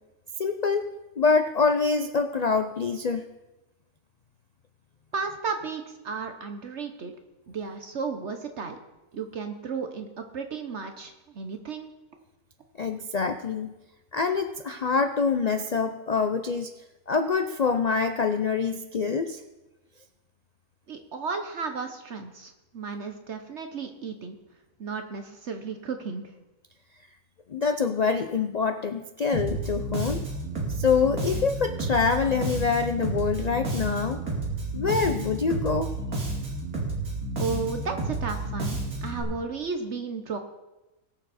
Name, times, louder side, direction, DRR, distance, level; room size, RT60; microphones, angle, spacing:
voice 1, 0.4-0.9 1.2-3.2 12.8-13.7 14.1-16.7 17.1-19.4 27.5-30.2 30.7-34.2 34.7-35.9, left 5 dB, 90° left, 8 dB, 0.3 m, -25 dB
voice 2, 5.1-7.1 7.5-8.8 9.1-11.9 20.9-24.4 24.8-26.3 37.4-40.4, right 5 dB, 55° right, 6 dB, 1.1 m, -34 dB
Bass guitar, 29.3-39.2, right 2 dB, 80° right, 3.0 m, -31 dB
21.0 x 7.0 x 4.2 m, 1.1 s
omnidirectional pair, 1.5 m